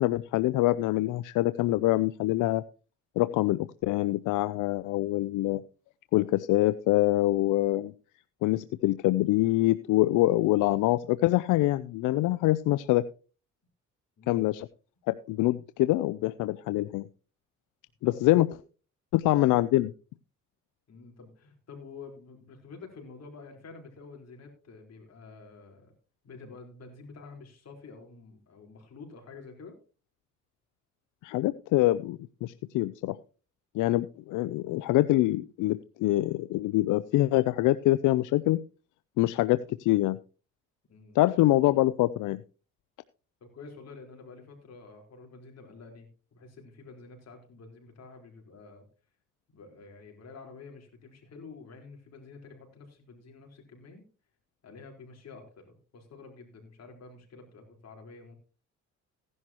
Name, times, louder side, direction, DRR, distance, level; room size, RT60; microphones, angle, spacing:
voice 1, 0.0-2.6 3.2-5.6 6.1-7.9 8.4-13.0 14.3-14.7 15.1-17.1 18.0-18.5 19.1-19.9 31.2-33.2 33.7-38.6 39.2-40.2 41.2-42.4, left 17 dB, 85° left, 15 dB, 0.5 m, -25 dB
voice 2, 14.2-14.6 18.0-18.6 20.9-25.9 26.2-29.7 40.9-41.2 43.4-48.9 49.5-54.0 54.6-58.4, left 4 dB, 55° left, 3 dB, 4.2 m, -49 dB
16.5 x 11.0 x 2.9 m, 0.35 s
cardioid pair, 90°, 30 cm